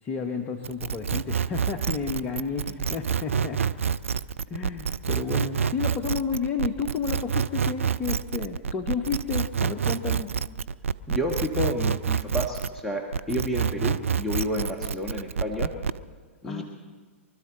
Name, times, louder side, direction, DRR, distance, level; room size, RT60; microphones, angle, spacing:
voice 1, 0.0-3.9 4.5-10.3 16.4-16.6, left 5 dB, 25° left, 5 dB, 1.0 m, -31 dB
sound 1, 0.6-12.8 13.1-16.0, right 7 dB, 75° right, 0.4 m, -27 dB
voice 2, 11.1-15.7 16.4-16.6, left 1 dB, ahead, -1 dB, 1.4 m, -30 dB
24.0 x 12.5 x 4.0 m, 1.5 s
figure-of-eight pair, 105°, 7 cm